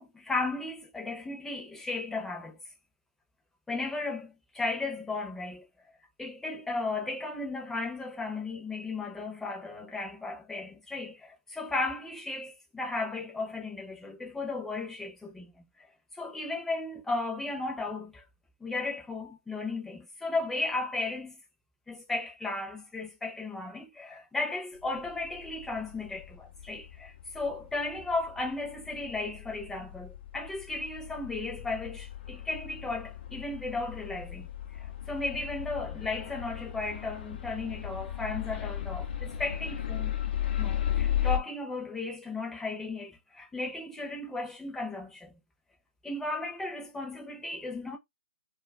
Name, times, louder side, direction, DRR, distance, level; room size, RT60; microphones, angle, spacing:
voice 1, 0.0-2.6 3.7-5.7 6.2-15.9 16.1-18.2 18.6-21.4 21.9-34.5 34.7-40.1 40.6-45.3 46.0-48.0, left 3 dB, 5° left, 0.7 m, -35 dB
sound 1, 24.8-41.4, left 11 dB, 55° left, 0.6 m, -36 dB
2.4 x 2.2 x 3.2 m
hypercardioid pair, 145°, 7 cm